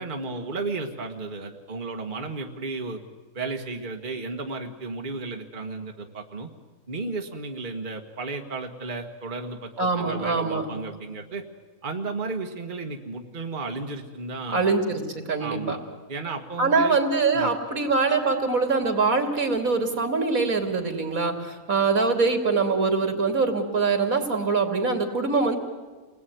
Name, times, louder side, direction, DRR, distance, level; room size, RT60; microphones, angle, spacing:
voice 1, 0.0-3.0 3.3-6.5 6.9-11.4 11.8-15.0 15.4-15.8 16.1-17.0 17.3-17.5, right 3 dB, 35° right, 3 dB, 1.7 m, -33 dB
voice 2, 9.8-10.7 14.5-15.8 16.6-25.6, right 4 dB, 75° right, 5 dB, 3.1 m, -23 dB
29.0 x 20.0 x 9.3 m, 1.4 s
omnidirectional pair, 1.5 m